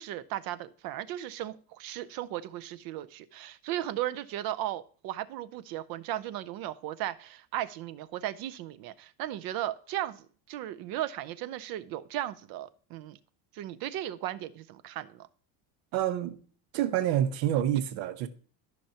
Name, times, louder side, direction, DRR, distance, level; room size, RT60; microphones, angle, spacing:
voice 1, 0.0-13.2 13.5-15.3, right 13 dB, 50° right, 0.6 m, -36 dB
voice 2, 15.9-16.4 16.7-18.3, right 11 dB, 75° right, 1.0 m, -27 dB
13.5 x 5.8 x 2.8 m
cardioid pair, 170°, 45 cm